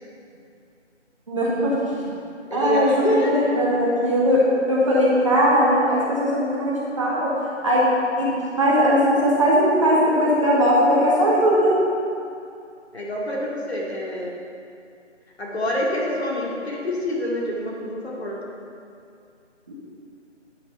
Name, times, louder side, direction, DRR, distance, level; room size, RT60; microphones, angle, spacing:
voice 1, 1.3-1.9 2.5-2.9 3.3-7.3 7.6-7.8 8.2-11.7, equal, 25° right, -7 dB, 1.5 m, -19 dB
voice 2, 2.5-3.4 12.9-14.3 15.4-18.4, left 1 dB, 55° left, -4 dB, 2.5 m, -26 dB
9.7 x 5.9 x 5.5 m, 2.4 s
figure-of-eight pair, 165°, 37 cm